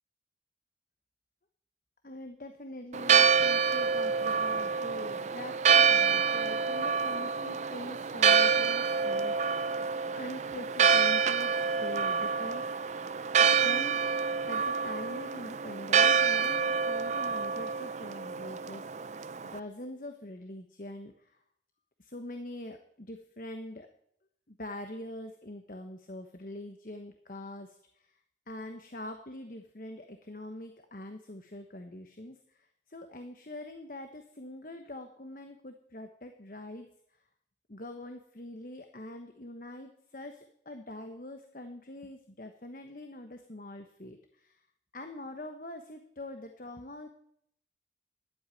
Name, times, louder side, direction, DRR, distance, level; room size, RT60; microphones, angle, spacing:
voice 1, 2.0-9.8 10.2-12.9 13.4-14.0 14.4-19.1 19.5-21.4 22.0-23.9 24.5-28.2 28.5-36.9 37.7-44.6 44.9-47.1, left 1 dB, 50° left, 6 dB, 1.1 m, -44 dB
Church bell, 2.9-19.6, right 6 dB, 40° right, 0.4 m, -27 dB
12.0 x 8.0 x 9.7 m, 0.70 s
head